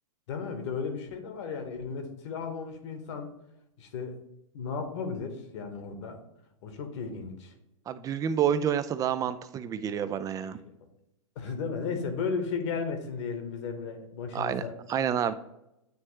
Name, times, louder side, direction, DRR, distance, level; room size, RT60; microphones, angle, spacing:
voice 1, 0.3-3.3 3.8-4.2 4.5-6.2 6.6-7.5 11.3-14.7, left 5 dB, 55° left, 5 dB, 1.4 m, -34 dB
voice 2, 7.9-10.6 14.3-14.6 14.9-15.3, right 9 dB, 20° right, 12 dB, 0.4 m, -28 dB
9.4 x 3.1 x 3.2 m, 0.84 s
hypercardioid pair, 110°, 18 cm